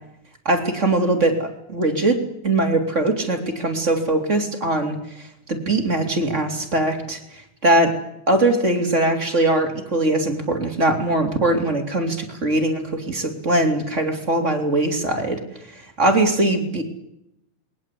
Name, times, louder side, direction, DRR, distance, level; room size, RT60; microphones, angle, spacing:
voice 1, 0.5-5.0 5.5-7.2 7.6-7.9 8.3-15.4 16.0-16.8, right 2 dB, 20° right, 3 dB, 3.6 m, -21 dB
27.5 x 22.5 x 8.6 m, 0.81 s
omnidirectional pair, 3.6 m